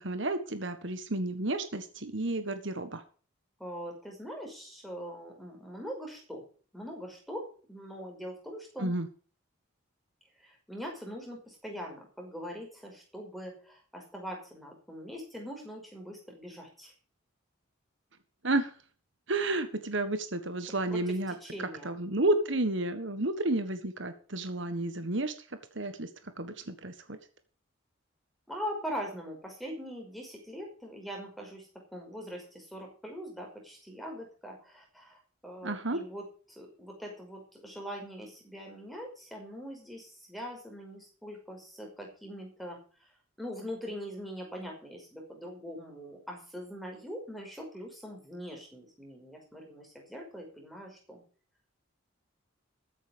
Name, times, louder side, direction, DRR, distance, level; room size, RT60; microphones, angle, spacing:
voice 1, 0.0-3.0 8.8-9.1 18.4-18.7 19.3-21.3 21.8-25.3 25.7-26.1 26.4-27.2 35.6-36.0, right 2 dB, 60° right, 10 dB, 1.5 m, -31 dB
voice 2, 3.6-6.4 6.7-8.9 10.4-16.9 20.9-21.9 28.5-42.8 43.4-51.2, equal, ahead, 1 dB, 5.5 m, -42 dB
14.5 x 9.3 x 5.2 m, 0.41 s
head